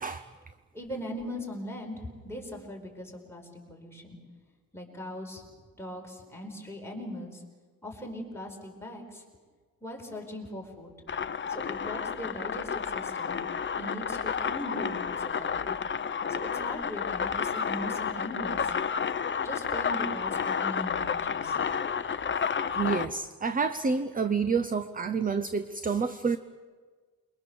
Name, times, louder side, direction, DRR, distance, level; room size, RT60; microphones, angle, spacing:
voice 1, 0.7-4.2 4.7-5.4 5.8-7.4 7.8-9.2 9.8-10.9 11.5-13.4 13.7-15.8 16.3-18.7 19.4-21.6, equal, 5° left, -1 dB, 4.9 m, -40 dB
sound 1, 11.1-23.1, left 6 dB, 30° left, 0.7 m, -31 dB
voice 2, 22.7-26.4, right 5 dB, 25° right, 11 dB, 0.7 m, -29 dB
28.5 x 22.5 x 7.0 m, 1.5 s
wide cardioid pair, 175°, 36 cm